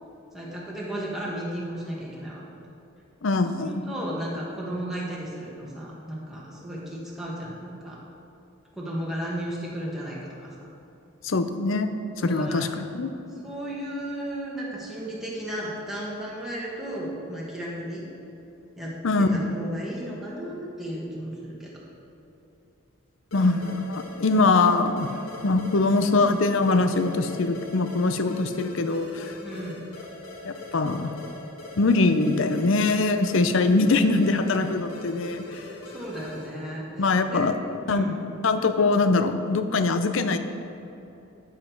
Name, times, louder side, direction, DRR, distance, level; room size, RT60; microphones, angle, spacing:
voice 1, 0.3-2.4 3.6-8.0 8.7-10.5 12.2-12.7 13.4-18.1 18.8-21.7 23.4-23.7 24.5-24.6 25.1-25.3 29.4-29.8 35.8-37.5 37.8-38.2, right 1 dB, ahead, -6 dB, 1.3 m, -34 dB
voice 2, 3.2-3.9 11.2-11.9 12.2-13.1 19.0-19.3 23.3-25.1 25.4-29.3 30.4-31.1 31.8-35.6 37.0-37.6 37.9-38.1 38.4-40.4, left 3 dB, 60° left, 9 dB, 0.5 m, -23 dB
sound 1, 23.3-36.6, left 2 dB, 80° left, 1.6 m, -41 dB
9.4 x 7.6 x 4.5 m, 2.9 s
head